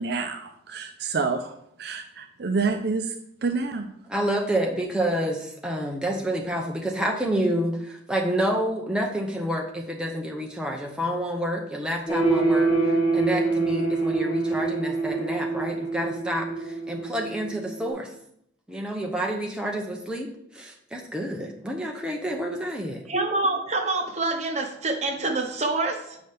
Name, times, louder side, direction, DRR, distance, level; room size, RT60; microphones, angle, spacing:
voice 1, 0.0-1.5 1.8-3.1 3.4-3.9, right 4 dB, 55° right, 6 dB, 0.5 m, -28 dB
voice 2, 4.1-18.1 18.7-23.0, equal, 5° right, 0 dB, 0.7 m, -29 dB
sound 1, 12.1-17.9, right 3 dB, 30° left, 2.8 m, -25 dB
voice 3, 23.1-26.2, right 2 dB, 35° right, 3 dB, 1.0 m, -26 dB
8.0 x 5.5 x 3.4 m, 0.73 s
head